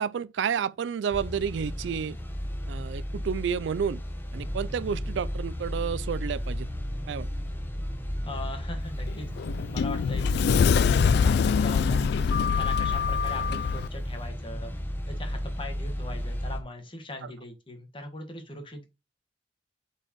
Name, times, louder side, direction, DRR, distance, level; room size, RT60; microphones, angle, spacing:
voice 1, 0.0-2.2 2.7-4.0 4.3-6.7 7.1-7.3 17.2-17.3, right 7 dB, 75° right, 0.3 m, -30 dB
sound 1, 1.1-16.6, equal, 10° left, 0.9 m, -34 dB
voice 2, 8.2-9.3 9.7-14.7 15.1-18.9, left 2 dB, 30° left, 1.5 m, -40 dB
Sliding door, 9.1-13.9, left 6 dB, 60° left, 0.3 m, -24 dB
7.6 x 4.6 x 3.0 m
head